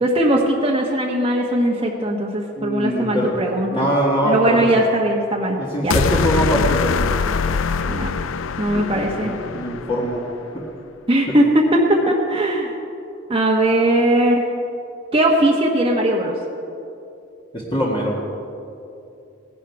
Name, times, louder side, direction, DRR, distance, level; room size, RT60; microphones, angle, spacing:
voice 1, 0.0-3.9 4.2-5.6 5.8-6.0 7.9-8.1 8.6-9.3 11.1-12.8 13.3-14.4 15.1-16.3, right 1 dB, 30° right, -2 dB, 1.2 m, -19 dB
voice 2, 2.6-4.7 5.7-7.3 8.7-8.8 9.2-10.2 17.5-18.2, equal, 25° left, -5 dB, 1.8 m, -22 dB
sound 1, 5.9-10.2, left 5 dB, 85° left, 0.5 m, -23 dB
18.5 x 11.0 x 4.7 m, 2.7 s
head